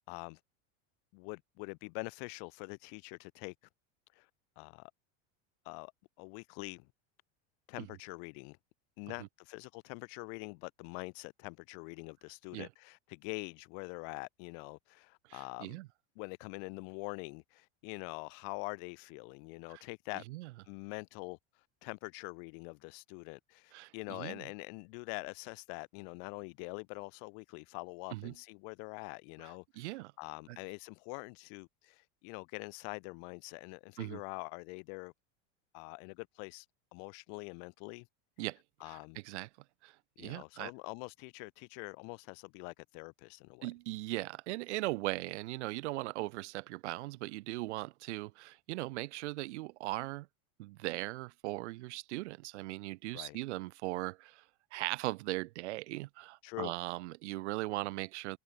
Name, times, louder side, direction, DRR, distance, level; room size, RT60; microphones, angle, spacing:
voice 1, 0.1-0.4 1.1-3.5 4.1-4.3 4.6-4.9 5.6-5.9 6.2-6.8 7.7-8.6 9.0-15.8 16.2-20.2 20.6-35.1 35.7-36.7 36.9-38.1 38.8-39.2 40.2-43.7 53.1-53.4 56.4-56.7, left 40 dB or more, 55° left, 4.1 m, -45 dB
voice 2, 15.3-15.9 19.7-19.8 20.3-20.5 23.7-24.4 28.1-28.3 29.4-30.1 30.5-30.6 34.0-34.2 38.4-38.6 38.8-39.5 39.8-40.7 43.6-50.3 50.6-54.4 54.7-58.4, right 20 dB, 75° right, 6.8 m, -39 dB
supercardioid pair, 165°, 34 cm